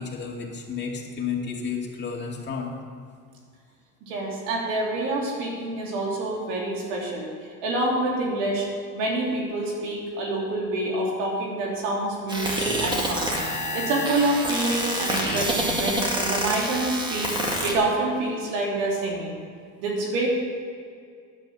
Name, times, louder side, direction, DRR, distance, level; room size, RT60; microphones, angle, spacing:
voice 1, 0.0-2.7, left 6 dB, 35° left, -1 dB, 2.2 m, -31 dB
voice 2, 4.0-7.3 7.6-8.7 8.9-13.3 13.7-17.3 17.6-19.4 19.8-20.3, right 2 dB, 90° right, -1 dB, 3.0 m, -27 dB
sound 1, 12.3-17.7, equal, 15° right, 2.0 m, -27 dB
10.5 x 7.9 x 6.8 m, 2.2 s
cardioid pair, 115°, 33 cm